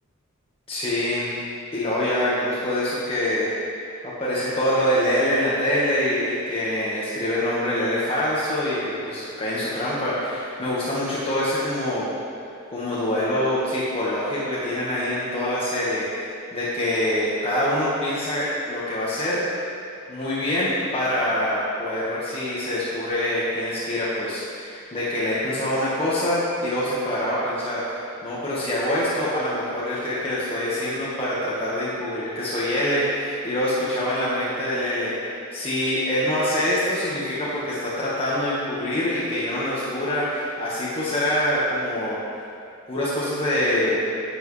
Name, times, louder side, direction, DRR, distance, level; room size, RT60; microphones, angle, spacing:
voice 1, 0.7-1.3 1.7-3.5 4.0-12.1 12.7-19.4 20.1-35.1 35.5-42.2 42.9-44.1, left 1 dB, 25° left, -9 dB, 1.5 m, -25 dB
10.5 x 7.4 x 3.3 m, 2.5 s
head